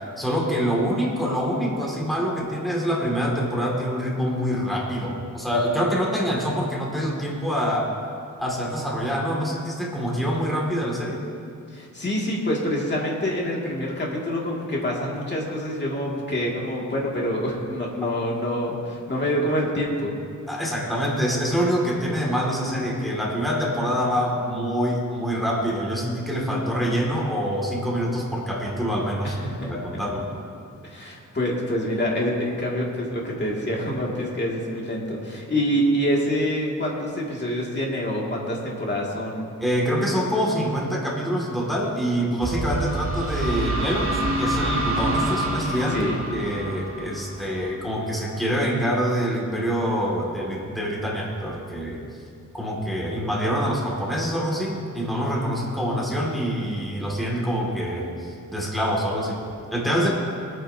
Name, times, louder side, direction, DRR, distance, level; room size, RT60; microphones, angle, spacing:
voice 1, 0.2-7.9 8.4-11.2 20.5-30.3 39.6-52.0 52.5-59.4 59.7-60.1, equal, ahead, -4 dB, 2.1 m, -25 dB
voice 2, 11.7-20.1 29.2-29.7 30.8-39.5 45.9-46.2, equal, 35° left, -3 dB, 2.2 m, -26 dB
sound 1, 42.4-48.1, right 1 dB, 45° right, 1.5 m, -27 dB
21.0 x 9.0 x 2.7 m, 2.4 s
wide cardioid pair, 140°, 31 cm